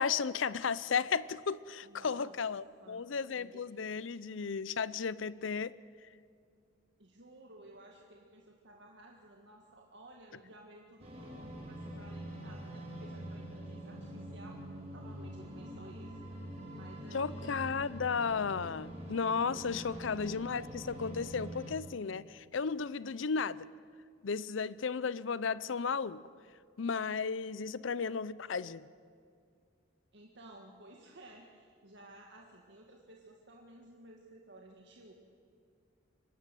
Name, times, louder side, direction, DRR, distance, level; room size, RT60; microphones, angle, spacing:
voice 1, 0.0-6.1 17.1-23.7 24.2-26.3 26.8-28.9, left 5 dB, 70° left, 19 dB, 0.6 m, -34 dB
voice 2, 1.8-2.3 2.8-3.0 3.4-3.6 7.0-14.6 14.9-16.2 16.7-17.6 19.4-20.3 30.1-35.1, right 1 dB, 60° right, 1 dB, 1.8 m, -55 dB
sound 1, 11.0-21.7, right 1 dB, 35° right, 6.0 m, -45 dB
24.0 x 13.0 x 9.2 m, 2.2 s
head